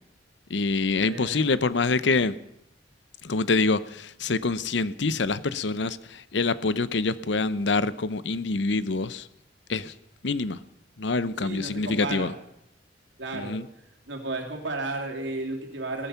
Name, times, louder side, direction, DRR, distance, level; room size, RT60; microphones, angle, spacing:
voice 1, 0.5-2.4 3.2-9.3 9.7-9.9 10.2-10.6 11.0-12.3 13.3-13.7, left 3 dB, 70° left, 16 dB, 0.7 m, -26 dB
voice 2, 1.1-1.5 11.4-12.3 13.2-13.6 14.1-16.1, right 2 dB, 80° right, 2 dB, 3.0 m, -33 dB
17.5 x 14.0 x 5.8 m, 0.77 s
head